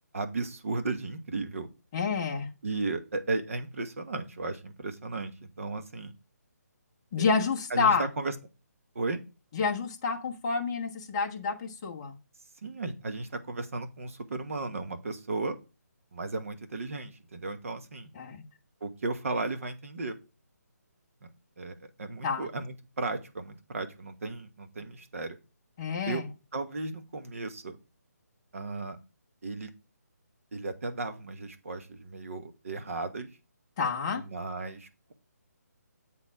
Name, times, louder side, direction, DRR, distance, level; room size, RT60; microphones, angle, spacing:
voice 1, 0.1-1.7 2.6-6.1 7.7-8.3 8.9-9.2 12.6-15.6 16.1-18.1 18.8-20.2 21.6-25.4 26.0-26.2 26.5-27.8 28.5-29.0 29.4-29.7 30.5-33.3 34.1-35.1, right 3 dB, 50° right, 7 dB, 1.3 m, -35 dB
voice 2, 1.9-2.5 7.1-8.0 9.5-12.1 18.1-18.4 22.2-22.5 25.8-26.3 33.8-34.2, left 5 dB, 20° left, 1 dB, 0.9 m, -28 dB
7.6 x 4.4 x 4.8 m, 0.30 s
hypercardioid pair, 170°, 9 cm